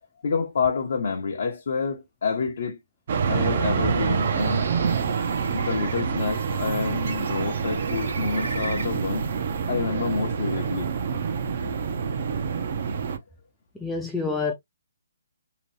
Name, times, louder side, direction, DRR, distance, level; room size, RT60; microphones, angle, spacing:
voice 1, 0.2-2.8 3.3-4.6 5.5-9.3 9.7-10.9 11.6-11.8, left 5 dB, 60° left, 0.6 m, -28 dB
sound 1, 3.1-13.2, right 6 dB, 50° right, 0.5 m, -27 dB
Bird, 3.8-9.4, right 3 dB, 75° right, 1.1 m, -40 dB
voice 2, 13.7-14.5, left 4 dB, 5° left, 0.4 m, -27 dB
2.8 x 2.0 x 3.1 m
hypercardioid pair, 155°, 0 cm